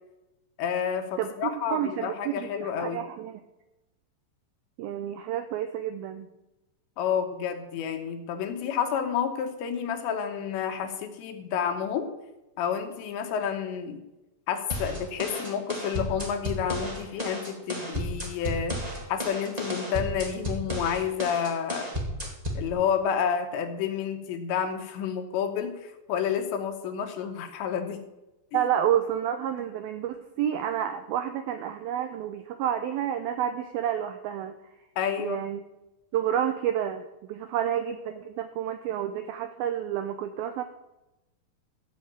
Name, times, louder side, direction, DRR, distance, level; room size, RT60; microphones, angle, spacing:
voice 1, 0.6-3.0 7.0-12.1 12.6-14.0 14.5-18.8 19.1-21.9 22.6-28.0 28.5-28.7 35.0-35.4, left 8 dB, 80° left, 5 dB, 3.6 m, -30 dB
voice 2, 1.2-3.4 4.8-6.3 28.5-34.6 35.2-35.6 36.1-37.0 37.3-40.6, right 10 dB, 90° right, 9 dB, 2.1 m, -29 dB
sound 1, 14.7-22.7, equal, 50° right, 0.4 m, -33 dB
14.5 x 5.7 x 8.8 m, 0.96 s
omnidirectional pair, 5.1 m